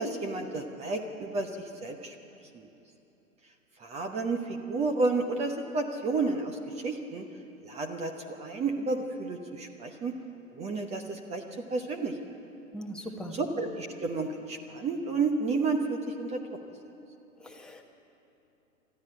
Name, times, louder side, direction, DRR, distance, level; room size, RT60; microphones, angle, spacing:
voice 1, 0.0-2.1 2.5-2.7 3.8-7.2 7.6-10.1 10.5-12.2 13.3-16.4, right 3 dB, 15° right, 5 dB, 1.0 m, -31 dB
voice 2, 12.7-13.4 17.4-17.8, equal, ahead, 1 dB, 1.4 m, -40 dB
20.5 x 13.5 x 9.6 m, 2.9 s
figure-of-eight pair, 115°, 43 cm